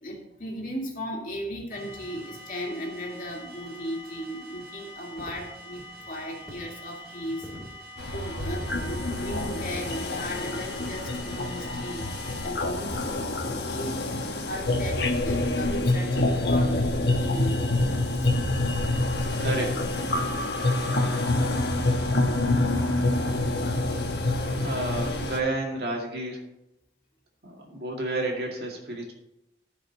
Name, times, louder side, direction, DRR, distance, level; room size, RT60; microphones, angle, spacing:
voice 1, 0.0-7.5 8.1-12.1 12.4-14.1 14.5-17.7 18.2-18.3, equal, 50° left, 0 dB, 2.2 m, -36 dB
sound 1, 1.7-12.5, equal, 15° right, 3.5 m, -45 dB
sound 2, 5.2-6.6 7.0-7.8 8.4-9.0 9.3-9.9 10.4-10.5 11.7-11.8 12.8-12.9 13.9-14.1 14.5-14.8 15.2-15.3 15.5-15.6 16.1-16.2 16.9-17.2 17.7-18.1 18.7-18.8 19.3-19.4 20.1-20.6 20.9-21.3 21.6-21.8, equal, 5° left, 2.8 m, -45 dB
sound 3, 8.0-25.4, left 2 dB, 75° left, 1.2 m, -26 dB
voice 2, 19.2-19.8 24.6-26.4 27.4-29.1, right 2 dB, 65° right, 0 dB, 2.2 m, -31 dB
15.0 x 5.2 x 4.0 m, 0.84 s
head